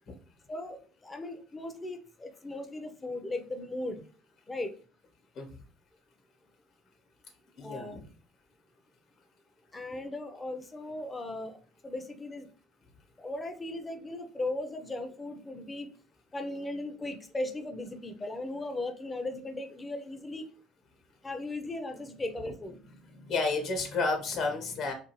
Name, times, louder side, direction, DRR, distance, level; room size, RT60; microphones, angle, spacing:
voice 1, 0.5-4.0 4.5-4.7 7.6-8.0 9.7-11.6 11.8-12.5 13.2-15.9 16.3-20.4 21.2-22.8, left 2 dB, 20° left, 6 dB, 0.5 m, -37 dB
voice 2, 7.6-7.9 23.0-24.9, left 3 dB, 60° left, 4 dB, 1.1 m, -31 dB
2.6 x 2.5 x 3.0 m, 0.39 s
hypercardioid pair, 70°, 0 cm